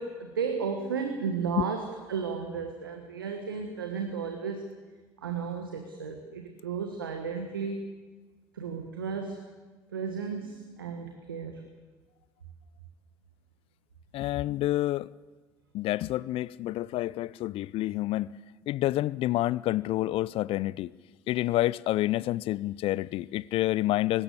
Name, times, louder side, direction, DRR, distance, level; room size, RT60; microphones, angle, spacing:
voice 1, 0.0-4.6 5.2-7.9 8.5-9.4 9.9-11.6, right 6 dB, 90° right, 1.5 m, -34 dB
voice 2, 14.1-15.1 15.7-18.3 18.7-20.9 21.3-24.2, left 16 dB, 55° left, 0.5 m, -28 dB
19.0 x 16.5 x 8.4 m
hypercardioid pair, 60°, 11 cm